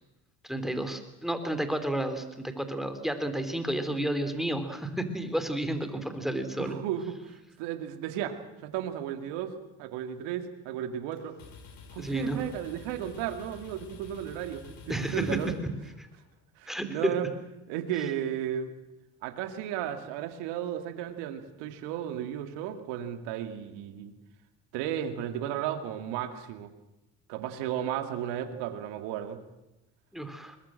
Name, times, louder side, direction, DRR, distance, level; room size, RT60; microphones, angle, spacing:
voice 1, 0.4-6.7 12.0-12.4 14.9-15.4 16.0-16.1 16.7-17.1 30.1-30.6, right 1 dB, ahead, 8 dB, 3.6 m, -31 dB
voice 2, 6.6-11.4 11.9-15.6 16.6-17.3 17.7-18.7 19.2-24.1 24.7-26.7 27.3-29.4, right 10 dB, 75° right, 8 dB, 2.3 m, -34 dB
sound 1, 11.1-16.3, left 5 dB, 50° left, 4.4 m, -50 dB
22.5 x 21.0 x 7.7 m, 0.99 s
hypercardioid pair, 70°, 42 cm